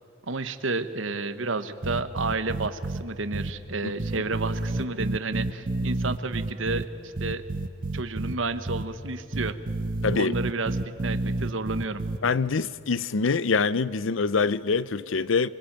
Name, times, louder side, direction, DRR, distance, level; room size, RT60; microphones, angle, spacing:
voice 1, 0.3-7.4 7.9-9.6 10.1-10.8 11.0-12.0, right 3 dB, 75° right, 1.2 m, -31 dB
sound 1, 1.8-3.0 3.3-3.5 4.0-6.8 7.2-8.3 8.7-8.8 9.3-12.2, right 2 dB, 45° right, 0.9 m, -29 dB
voice 2, 10.0-10.3 12.2-15.5, left 4 dB, 70° left, 0.6 m, -25 dB
25.5 x 22.5 x 9.0 m
head